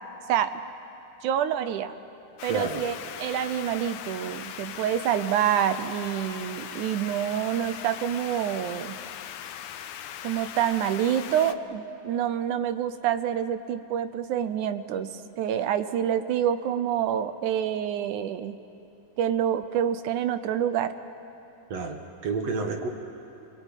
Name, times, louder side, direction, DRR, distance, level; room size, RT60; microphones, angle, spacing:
voice 1, 1.2-1.9 2.4-9.0 10.2-15.1 15.4-18.6 19.2-20.9, right 9 dB, 75° right, 11 dB, 2.1 m, -27 dB
sound 1, 2.4-11.5, left 10 dB, 75° left, 2.1 m, -39 dB
voice 2, 2.5-2.8 21.7-22.9, right 4 dB, 55° right, 4 dB, 2.4 m, -30 dB
28.0 x 21.5 x 9.1 m, 2.9 s
omnidirectional pair, 3.9 m